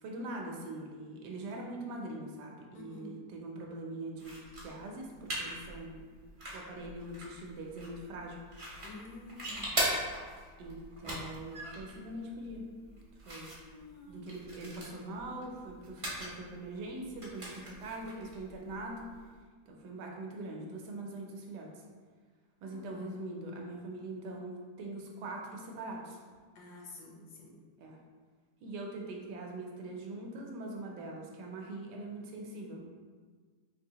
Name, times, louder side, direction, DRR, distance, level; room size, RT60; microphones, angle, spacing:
voice 1, 0.0-6.0 6.5-8.4 10.6-12.6 13.2-13.5 14.1-19.0 19.7-21.8 22.6-26.2 27.8-28.0 28.6-32.9, right 2 dB, 75° right, 0 dB, 1.2 m, -42 dB
voice 2, 2.7-3.1 8.8-9.9 13.6-14.3 22.6-22.9 26.5-27.6, left 3 dB, 75° left, -2 dB, 1.2 m, -50 dB
sound 1, 4.2-19.3, right 1 dB, 45° right, 0.4 m, -41 dB
4.2 x 2.6 x 2.8 m, 1.5 s
omnidirectional pair, 1.8 m